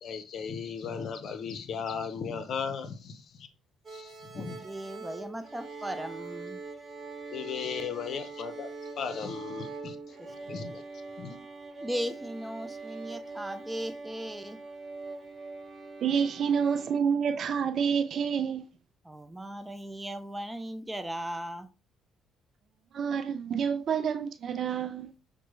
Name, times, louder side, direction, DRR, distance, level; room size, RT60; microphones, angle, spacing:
voice 1, 0.0-3.5 3.9-4.6 7.3-8.7 9.0-10.0 10.5-10.8 11.2-11.4, left 6 dB, 55° left, 0.7 m, -36 dB
sound 1, 3.8-17.0, right 3 dB, 30° right, 1.0 m, -43 dB
voice 2, 4.3-6.6 10.2-10.3 11.8-14.6 19.0-21.7, equal, 10° right, 0.6 m, -37 dB
voice 3, 16.0-18.6 22.9-25.1, right 7 dB, 55° right, 0.4 m, -28 dB
5.9 x 2.2 x 3.1 m
supercardioid pair, 65°, 0 cm